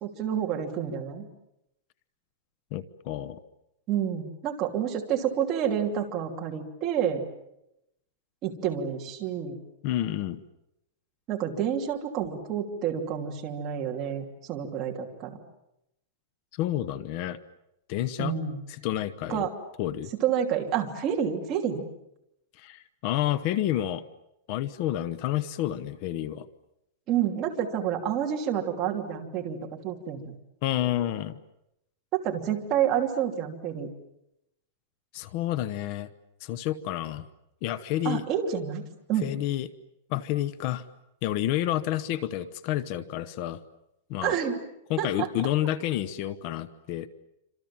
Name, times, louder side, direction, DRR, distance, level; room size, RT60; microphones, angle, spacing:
voice 1, 0.0-1.3 3.9-7.2 8.4-9.6 11.3-15.4 18.2-18.6 19.3-19.5 20.2-21.8 27.1-29.6 29.8-30.4 32.1-33.9 38.0-39.3 44.2-44.6 45.0-45.3, right 9 dB, 25° right, 1 dB, 2.9 m, -29 dB
voice 2, 2.7-3.4 9.8-10.4 16.6-17.4 17.9-18.3 18.7-19.5 19.8-20.1 22.6-24.0 24.5-26.5 30.6-31.4 35.1-36.1 36.4-37.2 37.6-38.2 39.2-39.7 40.1-40.8 41.2-43.6 44.1-44.4 44.9-47.1, left 13 dB, 35° left, 16 dB, 0.9 m, -29 dB
28.0 x 26.5 x 7.5 m, 0.85 s
supercardioid pair, 175°, 0 cm